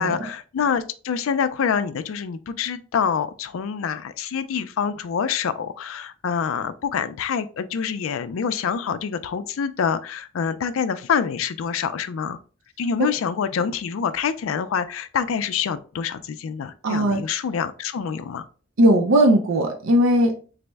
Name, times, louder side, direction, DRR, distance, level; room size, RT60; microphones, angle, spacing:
voice 1, 0.0-12.4 12.8-18.5, left 7 dB, 85° left, 0.4 m, -26 dB
voice 2, 16.8-17.2 18.8-20.6, right 1 dB, 90° right, 0.6 m, -18 dB
4.1 x 2.0 x 3.3 m
head